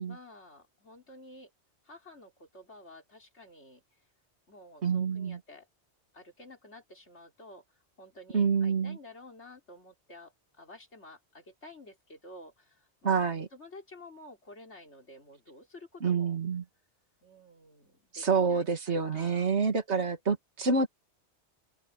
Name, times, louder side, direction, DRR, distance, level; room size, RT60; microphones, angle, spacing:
voice 1, 0.1-1.5 1.8-3.8 4.5-5.7 6.1-7.6 8.0-13.2 13.5-16.4 17.2-19.6, left 1 dB, 80° left, 4.7 m, -51 dB
voice 2, 4.8-5.4 8.3-9.0 13.0-13.5 16.0-16.6 18.1-20.9, right 5 dB, 75° right, 2.2 m, -27 dB
open air
omnidirectional pair, 1.2 m